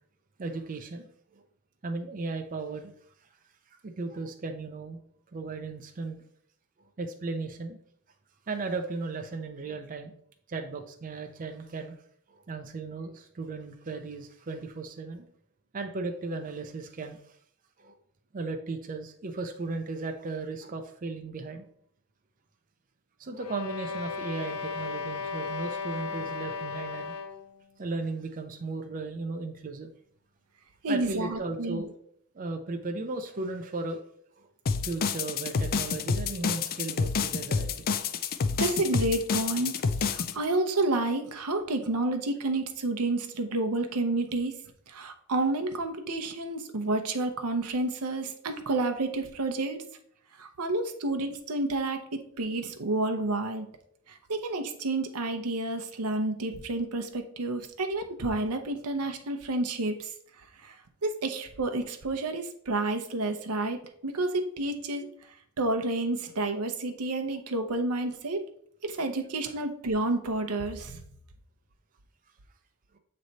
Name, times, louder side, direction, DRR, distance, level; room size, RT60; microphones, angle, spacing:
voice 1, 0.4-1.1 1.8-2.9 3.8-5.0 5.3-6.2 7.0-7.8 8.5-10.1 10.5-11.9 12.3-15.3 15.7-17.2 17.8-18.0 18.3-21.7 23.2-27.1 27.8-29.9 30.8-31.9 32.3-34.0 34.4-34.5 34.8-37.9, right 3 dB, 35° right, 5 dB, 0.5 m, -36 dB
sound 1, 23.4-27.5, left 5 dB, 90° left, 0.7 m, -35 dB
voice 2, 30.8-31.8 38.6-44.6 44.9-49.8 50.4-53.7 54.1-60.1 60.6-65.1 65.6-68.4 68.8-71.0, right 2 dB, 80° right, 6 dB, 0.8 m, -30 dB
sound 2, 34.7-40.3, left 5 dB, 40° left, 0.4 m, -28 dB
7.6 x 3.2 x 4.0 m, 0.65 s
head